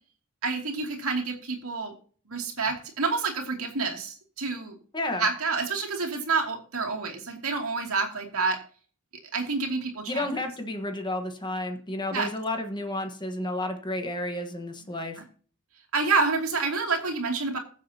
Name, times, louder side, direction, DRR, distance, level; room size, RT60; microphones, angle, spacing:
voice 1, 0.4-1.9 2.3-4.7 5.2-8.6 9.3-10.3 12.1-12.3 14.8-15.2 15.9-17.6, right 4 dB, 80° right, 1 dB, 2.6 m, -28 dB
voice 2, 4.9-5.2 10.1-15.2, left 1 dB, 20° left, 5 dB, 1.3 m, -31 dB
21.5 x 7.4 x 2.9 m, 0.44 s
head